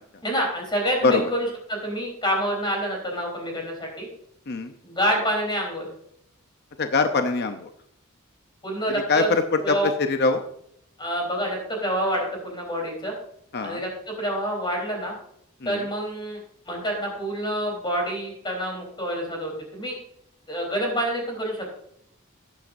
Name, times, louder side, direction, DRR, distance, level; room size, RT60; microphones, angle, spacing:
voice 1, 0.2-4.1 4.8-5.9 8.6-9.3 9.6-9.9 11.0-13.1 13.6-15.1 15.6-16.4 16.7-20.0 20.5-21.8, equal, 20° left, 0 dB, 3.8 m, -27 dB
voice 2, 6.8-7.7 9.1-10.4 13.5-13.8 15.6-15.8, left 4 dB, 50° left, 7 dB, 0.7 m, -23 dB
14.0 x 10.5 x 2.6 m, 0.71 s
head